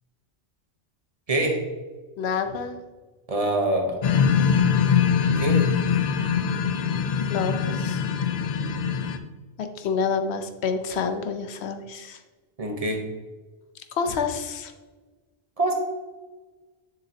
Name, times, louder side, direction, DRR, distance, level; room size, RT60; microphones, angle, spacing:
voice 1, 1.3-1.6 3.3-4.0 5.4-5.7 12.6-13.0 15.6-15.7, right 1 dB, 35° right, 2 dB, 1.0 m, -24 dB
voice 2, 2.2-2.8 7.3-8.1 9.6-12.2 13.9-14.7, left 5 dB, 75° left, 7 dB, 1.0 m, -28 dB
sound 1, 4.0-9.2, left 7 dB, 55° left, 0.5 m, -22 dB
7.0 x 6.7 x 2.8 m, 1.3 s
omnidirectional pair, 1.1 m